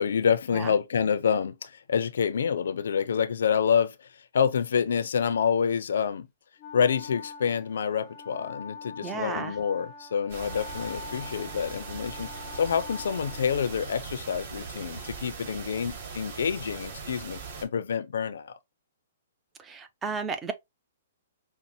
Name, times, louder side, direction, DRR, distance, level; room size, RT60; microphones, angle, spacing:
voice 1, 0.0-4.1 4.3-6.3 6.7-18.6, left 7 dB, 75° left, 0.5 m, -27 dB
Wind instrument woodwind instrument, 6.6-14.1, left 5 dB, 30° left, 0.6 m, -43 dB
voice 2, 9.0-9.5 19.6-20.5, right 5 dB, 15° right, 0.6 m, -33 dB
sound 1, 10.3-17.6, right 5 dB, 50° right, 2.2 m, -40 dB
5.3 x 2.1 x 2.7 m
hypercardioid pair, 145°, 0 cm